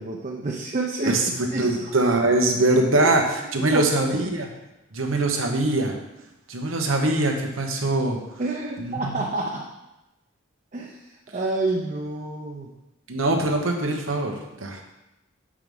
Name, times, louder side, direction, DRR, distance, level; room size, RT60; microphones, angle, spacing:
voice 1, 0.0-1.2 1.5-1.9 3.0-3.3 3.7-3.8 8.4-9.7 10.7-12.7, right 2 dB, 40° right, -1 dB, 0.7 m, -29 dB
voice 2, 1.0-4.5 4.9-6.0 6.5-8.2 8.8-9.2 13.1-14.3 14.6-14.8, right 2 dB, 85° right, 3 dB, 1.1 m, -22 dB
6.2 x 4.9 x 5.4 m, 0.94 s
head